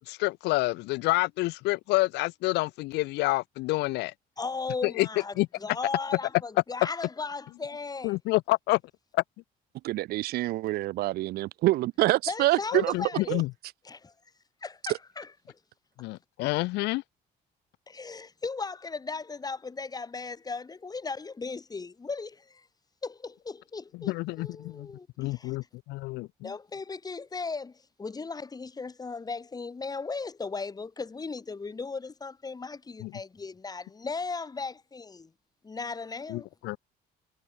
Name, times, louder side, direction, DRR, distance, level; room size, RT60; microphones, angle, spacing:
voice 1, 0.1-4.1 4.8-5.1 5.4-5.5 8.0-8.8 9.1-9.2 12.7-13.5 16.0-17.0 24.0-24.9 25.2-26.5 33.0-33.1 36.3-36.8, left 21 dB, 90° left, 1.4 m, -28 dB
voice 2, 4.4-8.2 12.3-13.4 13.8-14.1 14.6-15.3 17.9-22.7 23.0-25.5 26.4-35.3 35.6-36.5, left 4 dB, 20° left, 2.6 m, -37 dB
voice 3, 9.8-12.9 13.3-13.4, right 17 dB, 70° right, 0.4 m, -26 dB
cardioid pair, 110°, 17 cm